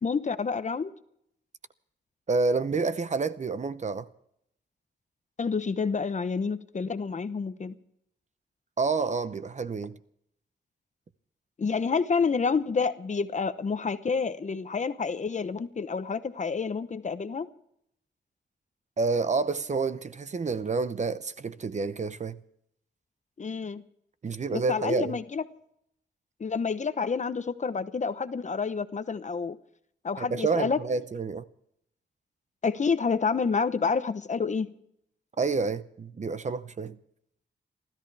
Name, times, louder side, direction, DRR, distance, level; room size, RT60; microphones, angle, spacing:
voice 1, 0.0-0.9 5.4-7.7 11.6-17.5 23.4-23.8 24.5-25.4 26.4-29.6 30.0-30.8 32.6-34.7, left 5 dB, 40° left, 0.8 m, -28 dB
voice 2, 2.3-4.1 8.8-10.0 19.0-22.4 24.2-25.2 30.2-31.4 35.4-37.0, right 4 dB, 40° right, 0.7 m, -29 dB
29.5 x 13.5 x 3.4 m
wide cardioid pair, 145°, 19 cm